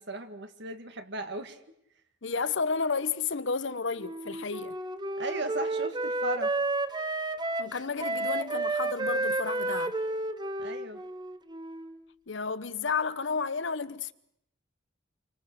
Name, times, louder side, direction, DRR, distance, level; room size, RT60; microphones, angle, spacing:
voice 1, 0.0-1.6 5.2-6.6 10.6-11.0, right 2 dB, 60° right, 2.1 m, -36 dB
voice 2, 2.2-4.8 7.6-9.9 12.3-14.1, left 5 dB, 65° left, 1.0 m, -31 dB
Wind instrument woodwind instrument, 4.0-12.0, right 2 dB, 20° right, 0.9 m, -31 dB
28.0 x 24.5 x 6.7 m
head